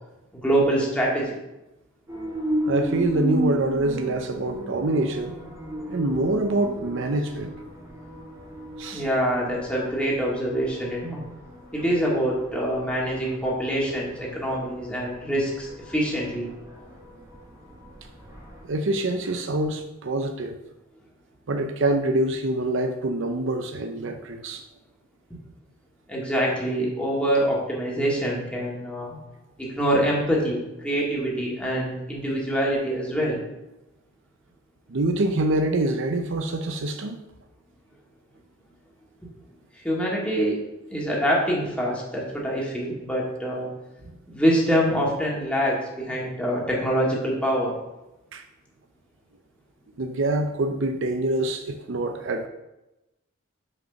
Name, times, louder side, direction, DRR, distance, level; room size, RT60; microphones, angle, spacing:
voice 1, 0.3-1.4 8.9-11.2 11.7-16.5 26.1-29.2 29.6-33.4 39.8-40.6 40.9-43.7 44.3-47.7, equal, 5° left, -4 dB, 2.0 m, -25 dB
sound 1, 2.1-18.6, right 1 dB, 20° right, 2.0 m, -35 dB
voice 2, 2.7-5.4 5.9-7.5 8.8-9.0 18.7-20.6 21.5-24.6 34.9-37.2 44.0-44.1 48.3-48.4 50.0-52.5, right 2 dB, 65° right, 6 dB, 0.6 m, -25 dB
6.1 x 5.3 x 5.7 m, 0.96 s
head